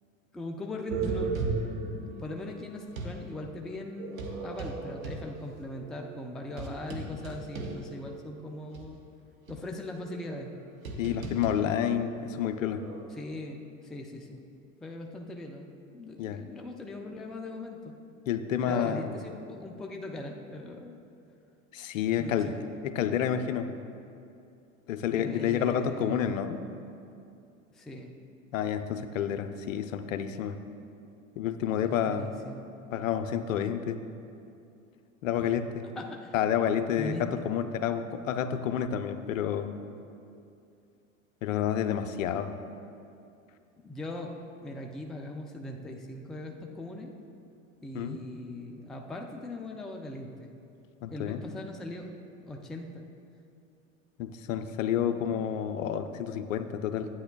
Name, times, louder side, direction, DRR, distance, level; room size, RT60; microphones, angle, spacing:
voice 1, 0.3-9.0 9.5-10.5 13.2-14.4 14.8-15.7 15.9-17.9 18.6-21.0 22.2-22.6 25.1-26.2 27.7-28.1 31.8-32.7 35.4-35.5 36.0-36.3 37.0-37.2 43.8-44.3 44.6-47.1 47.8-50.5 51.1-52.1 52.4-53.1, left 1 dB, ahead, 2 dB, 0.3 m, -40 dB
sound 1, 0.9-3.2 4.0-8.3 8.7-8.8 9.5-13.0, right 3 dB, 85° right, 1.0 m, -37 dB
voice 2, 11.0-12.8 16.2-16.4 18.3-19.1 21.7-22.5 22.8-23.7 24.9-26.6 28.5-30.6 31.4-32.3 32.9-34.0 35.2-35.9 36.3-39.7 41.4-42.5 47.9-48.2 51.0-51.4 54.2-57.1, left 9 dB, 75° left, 10 dB, 0.6 m, -29 dB
11.5 x 8.8 x 2.3 m, 2.6 s
figure-of-eight pair, 80°, 40 cm